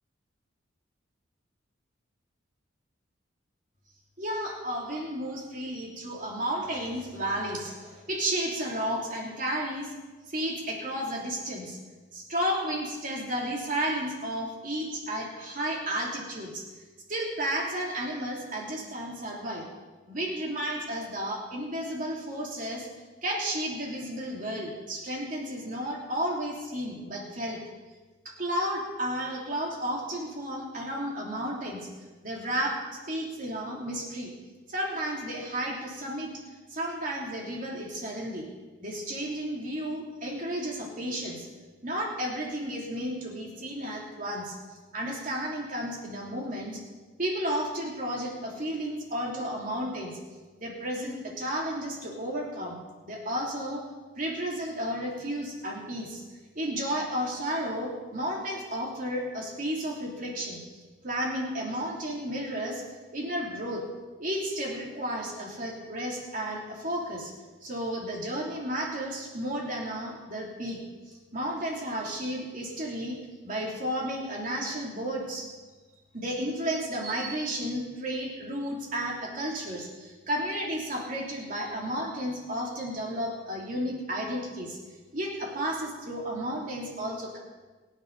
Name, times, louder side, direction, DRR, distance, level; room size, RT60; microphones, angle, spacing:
voice 1, 4.2-9.9 10.3-11.8 12.1-16.6 17.1-19.7 20.1-22.9 23.2-27.6 28.4-31.9 32.2-32.8 33.1-34.3 34.7-36.3 36.7-38.5 38.8-41.5 41.8-44.6 44.9-46.8 47.2-50.1 50.6-52.8 53.0-53.8 54.2-56.2 56.6-60.6 61.0-62.8 63.1-63.8 64.2-67.3 67.6-70.8 71.3-73.2 73.4-75.5 76.1-84.8 85.1-87.4, equal, 40° right, -2 dB, 3.3 m, -32 dB
24.0 x 10.0 x 4.2 m, 1.3 s
head